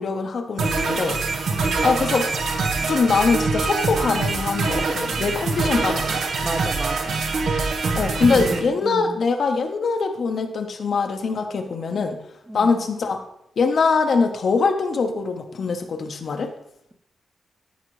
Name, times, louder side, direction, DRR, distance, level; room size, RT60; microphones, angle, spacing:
voice 1, 0.0-1.6 1.8-2.3 2.9-6.2 7.9-12.2 12.5-13.2 13.6-16.5, left 4 dB, 60° left, 5 dB, 0.9 m, -23 dB
sound 1, 0.6-8.6, right 4 dB, 80° right, 1.1 m, -24 dB
voice 2, 1.5-1.9 6.4-7.2 8.3-9.2 12.5-12.7, right 1 dB, 15° right, 6 dB, 0.8 m, -32 dB
13.5 x 4.9 x 3.2 m, 0.77 s
cardioid pair, 110°, 0 cm